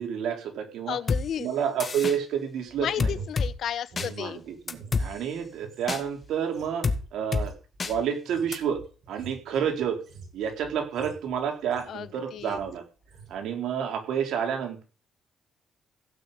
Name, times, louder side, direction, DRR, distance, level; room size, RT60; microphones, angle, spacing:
voice 1, 0.0-1.0 1.4-3.1 4.0-6.9 7.1-7.5 7.9-8.8 9.1-10.0 10.3-12.8 13.3-14.8, right 8 dB, 80° right, 3 dB, 4.1 m, -29 dB
voice 2, 0.9-1.5 2.8-4.4 11.9-12.6, left 9 dB, 70° left, 16 dB, 1.0 m, -33 dB
sound 1, 1.1-1.2 1.8-2.2 3.0-3.5 4.0-4.1 4.7-5.1 5.9-6.0 6.8-7.0 7.3-7.5 7.8-7.9 8.5-8.6, left 4 dB, 35° left, 1.9 m, -26 dB
sound 2, 2.7-5.0 5.3-12.0 12.4-12.7 13.0-13.4, right 5 dB, 65° right, 6.6 m, -47 dB
16.0 x 6.2 x 8.7 m, 0.36 s
cardioid pair, 90°, 0 cm